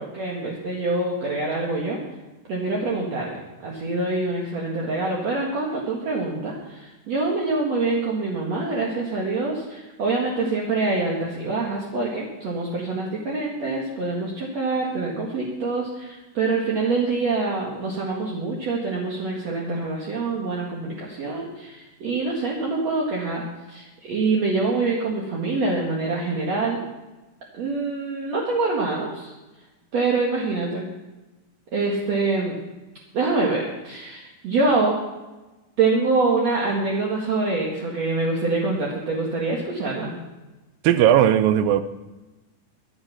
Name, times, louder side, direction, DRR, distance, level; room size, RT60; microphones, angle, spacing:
voice 1, 0.0-2.0 2.5-23.4 23.7-26.8 27.5-29.3 29.9-30.8 31.7-32.6 33.1-35.0 35.8-40.1, right 3 dB, 50° right, -3 dB, 2.9 m, -25 dB
voice 2, 40.8-41.8, right 11 dB, 80° right, 11 dB, 2.4 m, -17 dB
24.5 x 9.1 x 6.0 m, 1.1 s
omnidirectional pair, 4.1 m